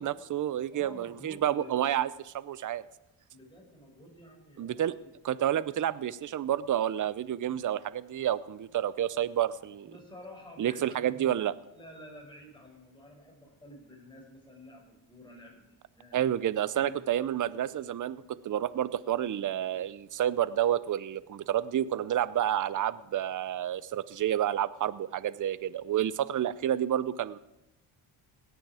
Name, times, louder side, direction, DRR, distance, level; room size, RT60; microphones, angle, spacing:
voice 1, 0.0-2.8 4.6-4.9 5.2-9.9 10.6-11.5 16.1-27.4, right 11 dB, 40° right, 18 dB, 0.6 m, -30 dB
voice 2, 0.7-1.9 3.3-5.1 9.8-11.4 11.7-15.6 15.9-16.3 16.7-17.0, equal, 10° left, -1 dB, 5.8 m, -50 dB
17.0 x 9.2 x 4.9 m, 0.95 s
cardioid pair, 85°, 48 cm